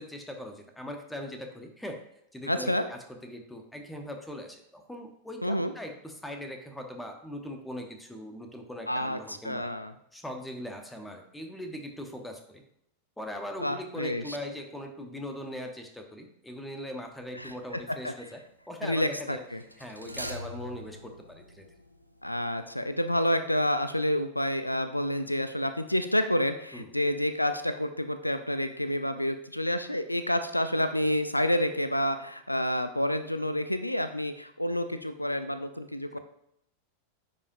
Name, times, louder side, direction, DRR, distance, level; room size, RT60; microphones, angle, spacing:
voice 1, 0.0-2.0 2.3-9.7 10.1-12.6 13.2-19.4 19.8-21.7 26.7-27.0, left 1 dB, 5° left, 4 dB, 1.0 m, -40 dB
voice 2, 2.5-2.9 5.4-5.7 8.9-9.9 13.6-14.4 17.3-17.5 18.0-18.1 18.8-19.6 22.2-36.2, left 1 dB, 85° left, 10 dB, 0.4 m, -29 dB
sound 1, 17.1-17.5 19.6-22.4 22.6-22.7, left 1 dB, 90° right, 0.5 m, -43 dB
9.6 x 5.0 x 2.7 m, 0.76 s
figure-of-eight pair, 90°, 0 cm